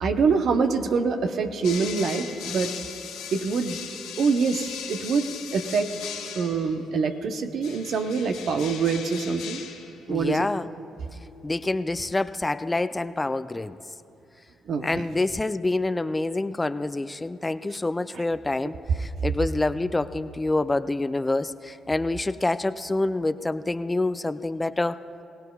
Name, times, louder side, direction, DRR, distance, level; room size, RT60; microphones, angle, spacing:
voice 1, 0.0-2.7 3.3-3.8 4.2-5.3 5.5-5.9 6.3-9.6 10.1-10.5 14.7-14.8, right 5 dB, 65° right, 6 dB, 0.8 m, -25 dB
sound 1, 1.6-6.8 7.6-10.0, left 8 dB, 85° left, 1.7 m, -38 dB
voice 2, 10.1-10.7 11.4-13.8 14.8-25.0, left 2 dB, 20° left, 12 dB, 0.4 m, -27 dB
22.0 x 18.0 x 2.4 m, 2.6 s
supercardioid pair, 55°, 0 cm